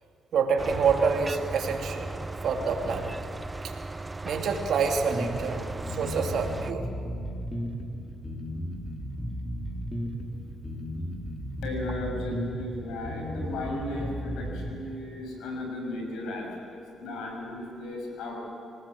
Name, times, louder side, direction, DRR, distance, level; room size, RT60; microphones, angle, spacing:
voice 1, 0.3-2.1 2.4-3.1 3.6-3.7 4.2-6.9, right 5 dB, 70° right, 3 dB, 2.7 m, -27 dB
sound 1, 0.6-6.7, right 2 dB, 15° right, 0.6 m, -37 dB
sound 2, 5.1-14.7, equal, 10° left, 3.8 m, -35 dB
voice 2, 11.6-16.5 16.9-18.3, left 1 dB, 85° left, 1 dB, 6.8 m, -35 dB
26.5 x 18.5 x 7.8 m, 2.6 s
cardioid pair, 90°, 0 cm